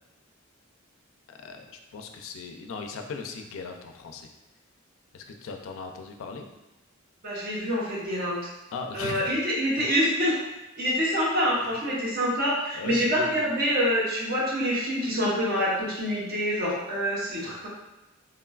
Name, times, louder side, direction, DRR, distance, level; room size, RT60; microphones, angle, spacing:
voice 1, 1.3-4.3 5.1-6.5 8.7-9.3 11.6-11.8 12.7-13.5, left 4 dB, 70° left, 4 dB, 0.3 m, -38 dB
voice 2, 7.2-8.4 8.9-10.4 10.8-17.7, equal, 50° right, -6 dB, 0.9 m, -26 dB
3.6 x 2.3 x 2.3 m, 0.98 s
head